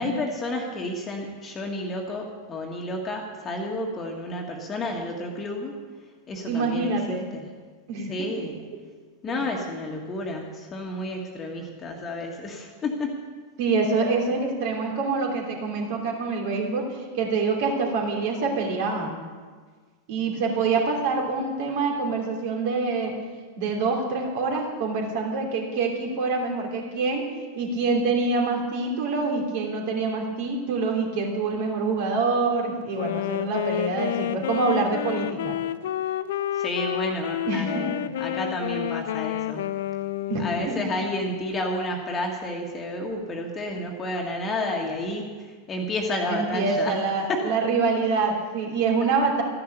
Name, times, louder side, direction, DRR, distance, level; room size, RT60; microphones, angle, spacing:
voice 1, 0.0-5.8 6.3-7.5 8.1-8.6 9.2-13.2 36.5-39.8 40.4-47.0 47.3-47.5, left 1 dB, 20° left, 1 dB, 1.7 m, -31 dB
voice 2, 6.4-7.3 7.9-8.1 13.6-19.2 20.1-23.1 23.6-27.3 27.6-35.6 37.5-37.9 40.3-40.8 46.3-49.4, right 4 dB, 50° right, 1 dB, 3.0 m, -26 dB
Wind instrument woodwind instrument, 32.9-41.0, left 12 dB, 55° left, 0.4 m, -30 dB
14.0 x 10.5 x 6.8 m, 1.5 s
figure-of-eight pair, 90°, 0 cm